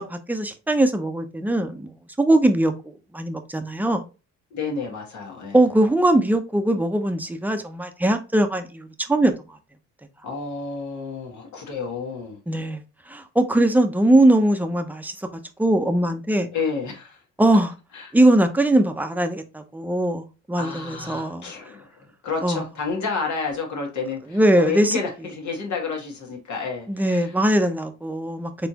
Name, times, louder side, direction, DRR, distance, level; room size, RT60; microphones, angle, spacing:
voice 1, 0.0-1.9 2.2-2.7 3.1-4.0 5.5-9.3 12.5-12.8 13.1-15.1 15.6-16.5 17.4-17.7 18.1-21.5 22.4-22.6 24.3-25.0 26.9-28.5, right 1 dB, 5° right, 0.7 m, -20 dB
voice 2, 4.5-5.6 10.2-12.4 16.5-17.2 17.9-18.1 20.6-21.8 22.2-27.3, left 5 dB, 70° left, 1.7 m, -30 dB
4.2 x 3.3 x 2.8 m
cardioid pair, 90°, 30 cm